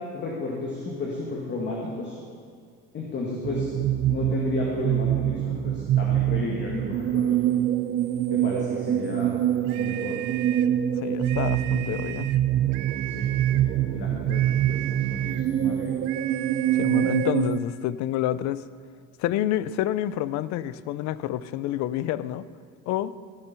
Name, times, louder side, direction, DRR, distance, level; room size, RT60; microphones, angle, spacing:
voice 1, 0.1-2.2 2.9-3.7 4.1-7.4 8.3-9.3 9.7-10.2 13.1-16.0, left 2 dB, 35° left, -2 dB, 1.8 m, -33 dB
sound 1, 3.4-17.6, right 11 dB, 35° right, 0.4 m, -25 dB
sound 2, 9.7-10.8 11.2-12.4 12.7-13.7 14.3-15.5 16.0-17.4, right 14 dB, 75° right, 0.6 m, -37 dB
voice 2, 11.0-12.3 16.8-18.6 19.2-22.5 22.9-23.1, left 13 dB, 65° left, 16 dB, 0.5 m, -28 dB
15.0 x 6.8 x 5.9 m, 2.1 s
cardioid pair, 125°, 31 cm